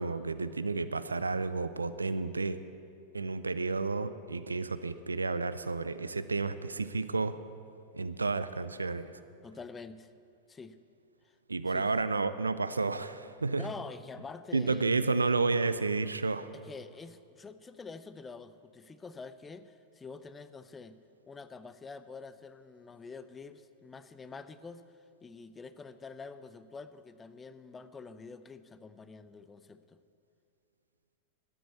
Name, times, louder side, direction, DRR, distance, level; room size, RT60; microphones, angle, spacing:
voice 1, 0.0-2.6 3.1-7.4 7.9-9.2 11.5-13.7 14.5-16.5, right 3 dB, 80° right, 13 dB, 0.5 m, -31 dB
voice 2, 9.4-10.1 10.5-10.8 11.2-11.4 11.7-12.1 13.6-15.4 16.6-21.0 21.3-30.0, left 4 dB, 15° left, 13 dB, 0.6 m, -47 dB
12.5 x 9.4 x 8.2 m, 2.5 s
figure-of-eight pair, 90°, 0 cm